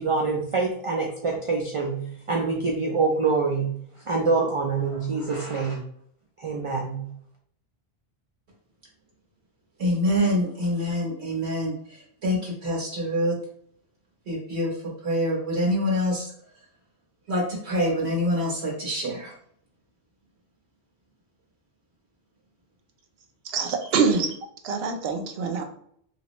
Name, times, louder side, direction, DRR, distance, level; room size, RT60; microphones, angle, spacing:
voice 1, 0.0-3.7 4.1-5.8 6.4-7.1, right 4 dB, 50° right, 0 dB, 0.4 m, -25 dB
voice 2, 9.8-11.7 12.2-13.3 14.3-14.7 15.0-16.3 17.3-19.3, equal, 90° right, -3 dB, 1.4 m, -25 dB
voice 3, 23.5-24.3 24.6-25.6, right 5 dB, 70° right, 5 dB, 0.8 m, -24 dB
2.9 x 2.9 x 3.0 m, 0.65 s
omnidirectional pair, 1.1 m